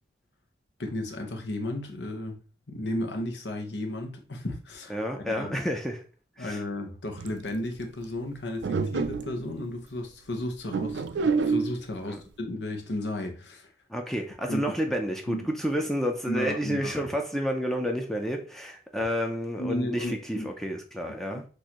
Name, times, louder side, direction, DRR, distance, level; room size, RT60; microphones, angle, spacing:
voice 1, 0.8-2.4 2.7-5.6 6.4-13.7 14.5-14.6 15.3-15.5 16.3-17.1 19.6-20.5 21.3-21.4, left 1 dB, 75° left, 1.0 m, -34 dB
voice 2, 4.9-6.0 6.4-6.6 12.1-12.2 13.9-21.5, equal, ahead, 0.5 m, -30 dB
sound 1, 7.2-7.5 8.6-9.4 10.7-11.7, right 4 dB, 80° right, 0.4 m, -27 dB
6.3 x 2.6 x 3.0 m
head